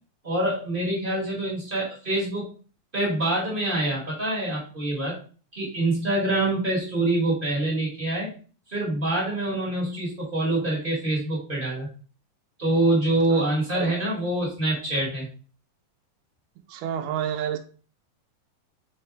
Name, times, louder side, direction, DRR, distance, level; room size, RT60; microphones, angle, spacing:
voice 1, 0.2-2.5 2.9-5.2 5.5-8.3 8.7-11.9 12.6-15.3, right 2 dB, 25° right, -4 dB, 1.1 m, -25 dB
voice 2, 16.7-17.6, right 9 dB, 80° right, 7 dB, 1.9 m, -29 dB
6.3 x 4.2 x 3.5 m, 0.38 s
omnidirectional pair, 4.2 m